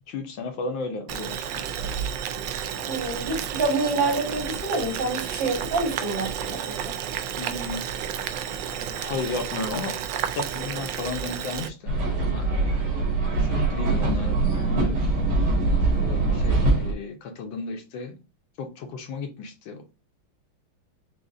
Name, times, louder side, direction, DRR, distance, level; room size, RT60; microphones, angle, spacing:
voice 1, 0.1-1.5 7.4-7.9 8.7-10.0 10.3-13.1 13.4-15.1 15.8-18.2 18.6-19.8, left 3 dB, 70° left, 5 dB, 1.5 m, -34 dB
Boiling, 1.1-11.7, right 9 dB, 75° right, 1.1 m, -31 dB
voice 2, 2.8-6.9, right 3 dB, 55° right, -4 dB, 3.4 m, -27 dB
sound 1, 11.9-16.9, right 3 dB, 90° right, 2.7 m, -23 dB
6.2 x 2.7 x 2.6 m, 0.29 s
omnidirectional pair, 2.3 m